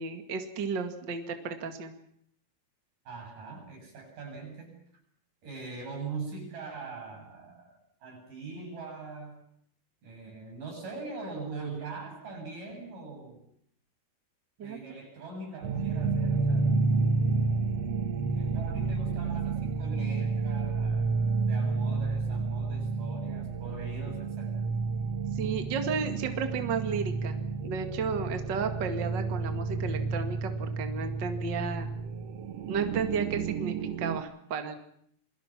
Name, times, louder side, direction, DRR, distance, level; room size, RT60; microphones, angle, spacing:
voice 1, 0.0-1.9 14.6-14.8 25.3-31.9 32.7-34.8, right 5 dB, 40° right, 7 dB, 2.3 m, -33 dB
voice 2, 3.1-4.8 5.4-9.4 10.0-13.4 14.6-16.8 18.3-24.7, right 4 dB, 90° right, 4 dB, 9.1 m, -42 dB
sound 1, 15.6-34.2, right 4 dB, 60° right, 2.1 m, -30 dB
28.5 x 23.0 x 6.0 m, 0.67 s
omnidirectional pair, 3.7 m